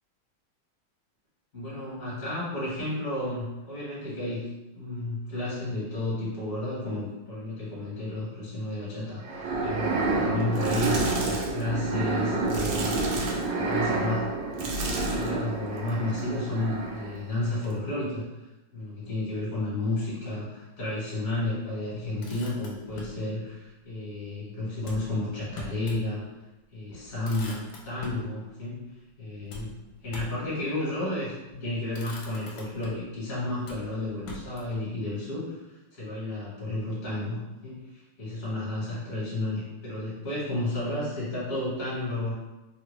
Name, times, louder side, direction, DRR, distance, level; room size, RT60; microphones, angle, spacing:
voice 1, 1.5-4.5 4.7-14.4 15.0-18.3 18.7-26.2 26.7-28.9 29.2-29.7 30.0-42.3, left 2 dB, 50° left, -8 dB, 1.4 m, -32 dB
sound 1, 9.2-17.3, right 3 dB, 75° right, 1.2 m, -29 dB
sound 2, 10.4-11.6 12.5-13.5 14.5-15.4 15.8-16.1 17.6-17.7, right 1 dB, 90° right, 1.5 m, -34 dB
Motor vehicle (road), 22.0-23.2 24.8-26.1 26.5-26.6 26.9-28.3 29.5-30.5 31.3-31.6 31.9-33.1 33.6-34.8, left 1 dB, 75° left, 1.4 m, -43 dB
3.4 x 2.1 x 3.1 m, 1.0 s
omnidirectional pair, 2.3 m